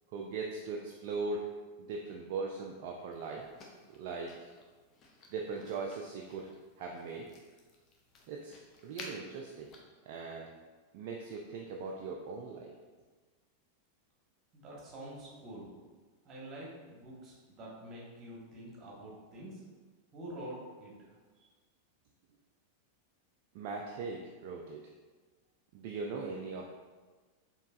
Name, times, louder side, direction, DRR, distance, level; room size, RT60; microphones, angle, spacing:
voice 1, 0.1-1.5 1.8-3.5 3.9-4.5 5.3-6.5 6.8-7.3 8.3-8.5 8.8-9.7 10.1-10.5 10.9-12.7 23.5-24.8 25.7-26.7, right 4 dB, 50° right, 0 dB, 0.3 m, -39 dB
sound 1, 3.1-9.8, left 3 dB, 30° left, 0.6 m, -55 dB
voice 2, 14.5-15.7 16.2-19.6 20.1-20.9, right 1 dB, 30° right, -4 dB, 1.2 m, -46 dB
4.5 x 2.9 x 2.3 m, 1.4 s
figure-of-eight pair, 90°, 0 cm